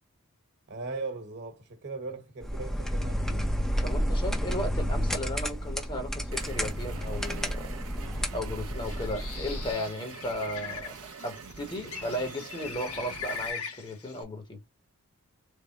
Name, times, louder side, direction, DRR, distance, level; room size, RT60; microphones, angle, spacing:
voice 1, 0.7-3.5, right 3 dB, 50° right, 1.2 m, -39 dB
sound 1, 2.4-9.7, equal, ahead, 0.5 m, -31 dB
voice 2, 3.8-7.7 8.3-10.9 11.2-14.6, left 1 dB, 20° left, 0.9 m, -35 dB
sound 2, 6.3-13.5, right 6 dB, 70° right, 0.5 m, -45 dB
Bird, 8.7-14.2, left 6 dB, 85° left, 1.2 m, -41 dB
3.5 x 2.0 x 4.0 m
head